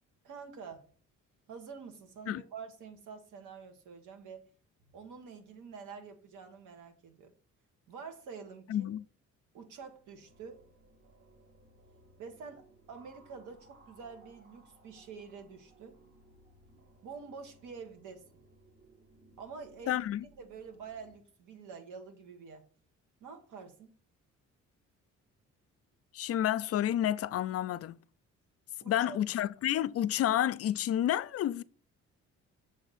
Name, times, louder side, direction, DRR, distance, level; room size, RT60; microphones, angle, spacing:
voice 1, 0.2-0.8 1.5-4.4 4.9-7.3 7.9-8.9 9.5-10.6 12.2-16.0 17.0-18.2 19.4-20.0 20.4-22.6 23.2-23.9 28.8-29.2, right 5 dB, 85° right, 1.4 m, -47 dB
voice 2, 8.7-9.0 19.9-20.2 26.1-28.0 28.8-31.6, left 11 dB, 50° left, 0.4 m, -30 dB
sound 1, 9.5-21.1, right 1 dB, 40° right, 1.2 m, -62 dB
7.0 x 3.5 x 4.1 m
cardioid pair, 90°, 30 cm